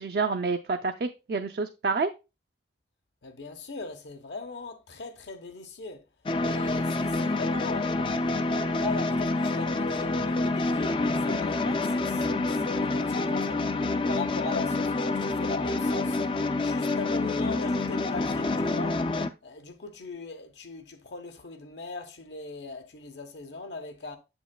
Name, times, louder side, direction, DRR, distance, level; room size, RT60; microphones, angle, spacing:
voice 1, 0.0-2.1, right 4 dB, 60° right, 0.4 m, -28 dB
voice 2, 3.2-6.0 6.4-13.6 14.1-16.2 16.6-19.0 19.4-24.2, left 3 dB, 85° left, 1.0 m, -39 dB
sound 1, 6.3-19.3, left 2 dB, 30° left, 0.3 m, -27 dB
7.7 x 7.1 x 2.3 m
head